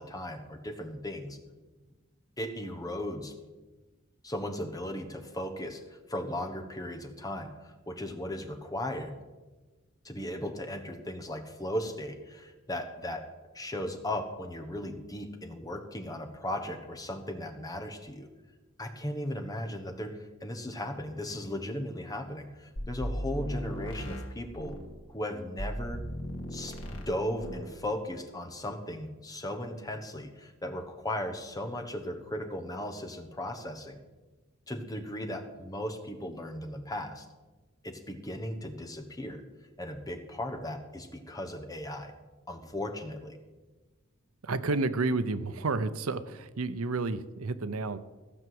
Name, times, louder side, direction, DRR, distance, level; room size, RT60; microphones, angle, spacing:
voice 1, 0.0-1.4 2.4-3.3 4.2-9.1 10.0-13.3 13.5-18.3 18.8-24.7 25.1-26.0 26.5-34.0 34.7-37.3 37.8-39.4 39.8-42.1 42.5-43.4, left 1 dB, 15° left, 5 dB, 1.2 m, -37 dB
sound 1, 22.8-24.9 25.6-27.1 27.4-27.7, equal, 75° left, 2.2 m, -36 dB
voice 2, 44.4-48.0, right 3 dB, 85° right, 13 dB, 0.7 m, -30 dB
15.5 x 5.9 x 7.8 m, 1.2 s
head